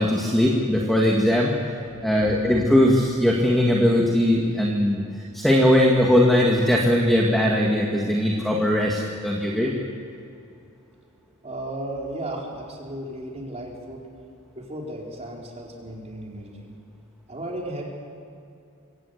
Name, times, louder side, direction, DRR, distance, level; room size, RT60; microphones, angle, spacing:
voice 1, 0.0-1.5 2.0-5.0 5.3-9.7, left 1 dB, ahead, -2 dB, 2.0 m, -20 dB
voice 2, 11.4-14.0 14.6-16.8 17.3-17.8, right 1 dB, 30° right, -2 dB, 4.3 m, -34 dB
24.0 x 17.0 x 8.0 m, 2.5 s
head